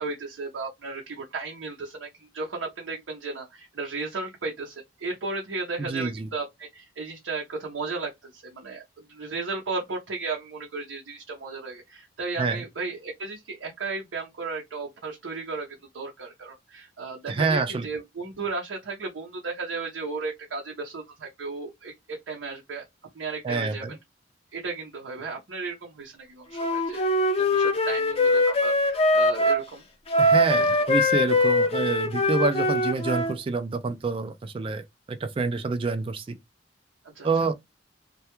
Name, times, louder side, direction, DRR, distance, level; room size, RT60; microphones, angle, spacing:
voice 1, 0.0-15.7 15.9-22.8 23.1-24.0 24.5-27.0 27.4-29.8 30.6-30.8 37.0-37.3, right 3 dB, 85° right, 0.6 m, -35 dB
voice 2, 5.8-6.3 12.4-12.6 17.3-17.9 23.4-23.9 30.2-36.4 37.2-37.5, right 4 dB, 30° right, 0.3 m, -27 dB
Wind instrument woodwind instrument, 26.5-29.6 30.1-33.3, left 1 dB, 35° left, 0.5 m, -22 dB
2.2 x 2.2 x 2.9 m
head